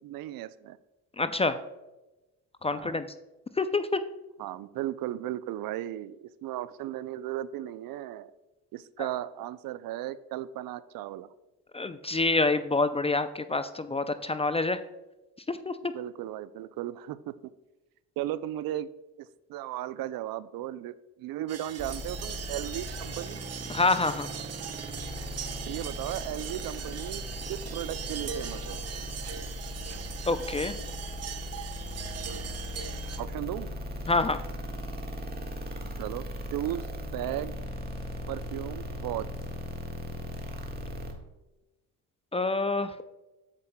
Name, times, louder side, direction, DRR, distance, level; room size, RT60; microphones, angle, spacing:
voice 1, 0.0-0.8 2.7-3.0 4.4-8.3 8.7-11.3 15.9-17.3 18.2-18.9 19.2-23.4 25.7-27.2 27.5-28.8 32.3-32.5 33.2-33.7 36.0-36.3 36.5-37.5 38.3-39.3, right 13 dB, 65° right, 16 dB, 0.5 m, -36 dB
voice 2, 1.2-1.6 2.6-3.1 3.6-4.0 9.0-9.1 11.7-14.8 15.5-15.9 23.7-24.3 30.3-30.8 34.1-34.4 42.3-43.0, left 3 dB, 15° left, 11 dB, 0.4 m, -27 dB
sound 1, 21.5-33.2, right 7 dB, 40° right, 0.8 m, -40 dB
sound 2, 21.8-41.1, equal, 25° right, 1.6 m, -38 dB
9.6 x 7.4 x 2.2 m, 1.1 s
supercardioid pair, 70°, 38 cm